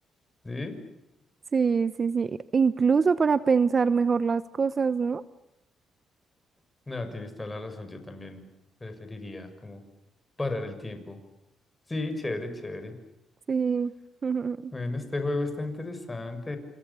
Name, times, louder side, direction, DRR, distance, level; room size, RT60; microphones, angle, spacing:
voice 1, 0.4-0.8 6.9-8.4 8.8-9.8 10.4-11.2 11.9-13.0 14.7-16.6, left 2 dB, 15° left, 7 dB, 6.2 m, -34 dB
voice 2, 1.5-5.2 13.5-13.9 14.2-14.7, right 5 dB, 40° right, 15 dB, 1.0 m, -24 dB
28.5 x 28.0 x 7.1 m, 0.92 s
cardioid pair, 90°, 0 cm